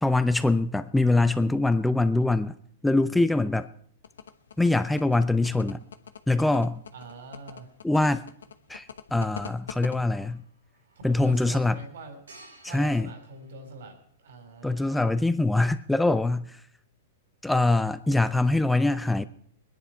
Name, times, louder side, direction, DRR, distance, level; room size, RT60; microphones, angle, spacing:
voice 1, 0.0-2.6 2.8-3.7 4.6-5.8 6.3-6.8 7.8-8.2 8.7-10.4 11.0-11.8 12.6-13.1 14.6-16.6 17.4-19.3, left 2 dB, 5° left, 0.5 m, -23 dB
sound 1, 4.0-10.0, left 7 dB, 85° left, 0.9 m, -42 dB
voice 2, 6.9-7.7 11.1-12.2 12.7-15.1, right 2 dB, 70° right, 4.2 m, -44 dB
sound 2, 9.6-14.4, right 2 dB, 90° right, 5.4 m, -57 dB
21.0 x 10.5 x 4.6 m
hypercardioid pair, 120°, 0 cm